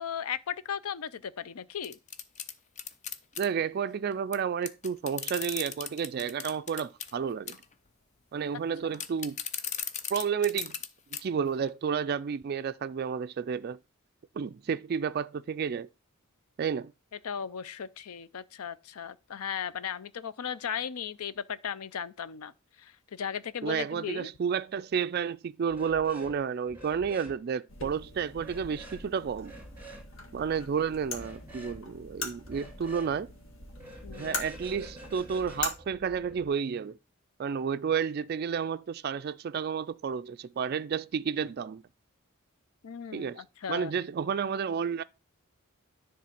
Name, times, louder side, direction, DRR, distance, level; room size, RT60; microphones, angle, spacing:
voice 1, 0.0-2.0 17.2-22.5 22.8-24.3 34.0-34.4 42.8-43.9, left 8 dB, 85° left, 0.5 m, -36 dB
sound 1, 1.8-3.5 4.3-4.4 4.6-7.1 7.5-7.7 8.9-10.9 11.1-11.2 11.7-11.8, left 7 dB, 30° left, 0.6 m, -37 dB
voice 2, 3.4-7.6 8.3-9.4 10.1-10.8 11.1-13.8 14.4-15.9 16.6-16.9 23.6-29.5 30.3-33.3 34.1-37.0 37.4-41.8 43.1-43.4 43.7-45.0, right 7 dB, 45° right, 0.3 m, -31 dB
sound 2, 25.7-26.4 26.7-27.4 28.4-29.0 29.4-30.1 31.1-31.8 32.4-33.1 33.7-36.4, equal, 10° right, 2.1 m, -48 dB
sound 3, 27.7-35.7, left 3 dB, 65° left, 1.7 m, -41 dB
10.0 x 3.6 x 5.8 m
head